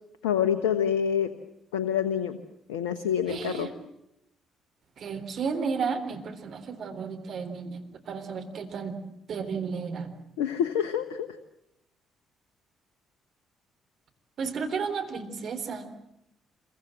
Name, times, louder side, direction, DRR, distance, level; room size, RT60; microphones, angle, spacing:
voice 1, 0.2-1.3 1.7-2.4 2.7-3.7 10.4-11.3, left 8 dB, 80° left, 12 dB, 1.0 m, -26 dB
voice 2, 3.3-3.7 5.0-9.0 9.3-10.1 14.4-15.9, right 5 dB, 60° right, 5 dB, 3.8 m, -33 dB
27.0 x 23.0 x 7.7 m, 0.83 s
hypercardioid pair, 45°, 0 cm